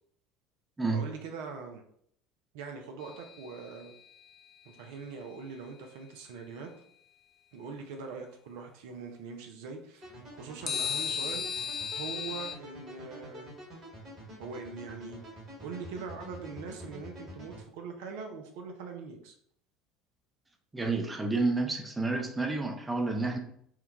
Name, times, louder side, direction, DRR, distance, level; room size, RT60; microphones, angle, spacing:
voice 1, 0.9-1.8 2.5-3.9 4.6-6.7 7.5-11.5 11.9-13.5 14.4-15.3 15.6-19.3, right 5 dB, 65° right, 0.4 m, -42 dB
sound 1, 3.0-4.3 10.7-12.5, left 7 dB, 35° left, 0.4 m, -35 dB
sound 2, 10.0-17.6, equal, 40° right, 1.5 m, -47 dB
voice 2, 20.7-23.4, right 3 dB, 15° right, 0.5 m, -30 dB
4.5 x 2.2 x 2.3 m
figure-of-eight pair, 65°, 0 cm